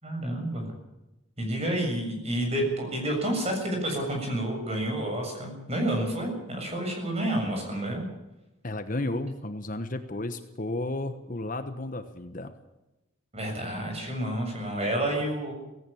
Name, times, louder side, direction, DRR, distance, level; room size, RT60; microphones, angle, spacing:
voice 1, 0.0-0.7 1.4-8.0 13.3-15.5, right 1 dB, 30° right, 2 dB, 7.3 m, -29 dB
voice 2, 8.6-12.5, left 2 dB, 40° left, 8 dB, 1.3 m, -33 dB
17.5 x 17.0 x 8.6 m, 0.97 s
head